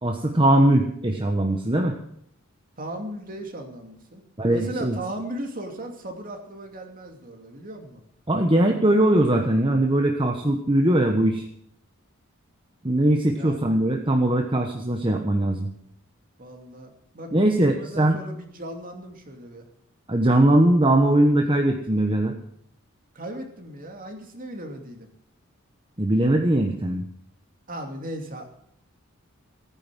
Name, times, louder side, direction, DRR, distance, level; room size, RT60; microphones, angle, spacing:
voice 1, 0.0-1.9 4.4-5.0 8.3-11.4 12.8-15.7 17.3-18.1 20.1-22.3 26.0-27.0, right 1 dB, 25° right, 3 dB, 1.2 m, -20 dB
voice 2, 2.8-4.2 4.5-8.0 13.3-13.7 16.4-19.6 23.1-25.1 27.7-28.5, right 1 dB, 40° right, 3 dB, 2.7 m, -37 dB
16.5 x 9.9 x 7.6 m, 0.72 s
head